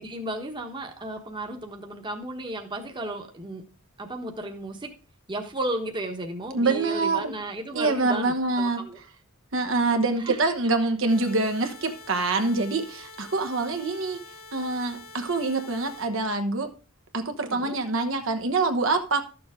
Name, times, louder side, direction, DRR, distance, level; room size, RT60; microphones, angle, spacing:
voice 1, 0.0-3.6 4.0-4.9 5.3-9.0 10.2-10.4 17.5-17.8, right 1 dB, 20° right, 1.2 m, -34 dB
voice 2, 6.5-7.3 7.7-8.8 9.5-14.2 14.5-16.7 17.1-19.2, right 3 dB, 65° right, 1.1 m, -25 dB
sound 1, 11.1-16.1, left 3 dB, 75° left, 4.1 m, -46 dB
13.0 x 6.9 x 3.7 m
head